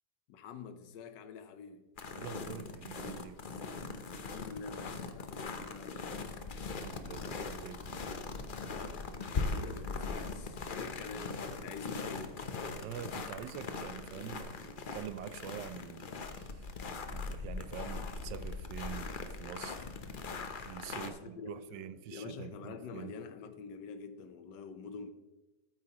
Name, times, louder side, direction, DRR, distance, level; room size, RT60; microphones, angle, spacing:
voice 1, 0.3-1.9 4.2-6.3 9.5-12.4 20.9-25.1, left 5 dB, 80° left, 1.5 m, -46 dB
sound 1, 2.0-21.1, left 4 dB, 45° left, 0.6 m, -40 dB
voice 2, 2.1-3.4 6.8-8.1 12.7-14.6 14.9-16.7 17.0-19.1 19.4-19.8 20.6-23.2, right 9 dB, 85° right, 1.3 m, -45 dB
13.5 x 8.9 x 3.0 m
omnidirectional pair, 1.9 m